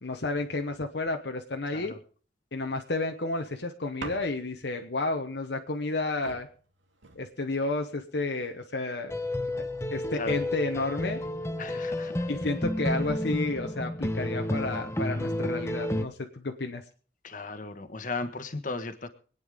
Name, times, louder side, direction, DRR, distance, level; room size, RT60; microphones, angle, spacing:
voice 1, 0.0-1.9 2.5-6.5 7.1-9.1 9.5-9.6 9.9-11.2 12.3-16.8, left 2 dB, 60° left, 4 dB, 1.0 m, -31 dB
sound 1, 4.0-4.7 5.9-6.0 6.2-7.7 8.5-8.9, right 3 dB, 85° right, 2.4 m, -44 dB
sound 2, 9.1-16.0, left 1 dB, 15° left, 0.9 m, -31 dB
voice 2, 11.6-12.3 17.2-19.1, left 3 dB, 45° left, 9 dB, 1.3 m, -36 dB
24.5 x 9.3 x 3.6 m, 0.43 s
head